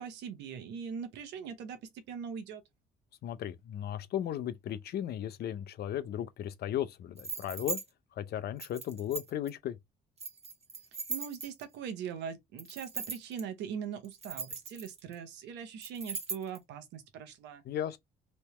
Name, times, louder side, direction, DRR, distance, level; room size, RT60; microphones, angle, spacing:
voice 1, 0.0-2.6 11.1-17.6, right 7 dB, 80° right, 0.9 m, -41 dB
voice 2, 3.2-7.8 8.2-9.8 17.6-18.0, left 10 dB, 65° left, 0.6 m, -36 dB
sound 1, 7.2-7.8 8.6-9.5 10.2-11.7 12.6-13.4 14.0-15.1 15.8-16.6, right 4 dB, 35° right, 1.2 m, -39 dB
3.2 x 2.8 x 3.1 m
supercardioid pair, 70°, 18 cm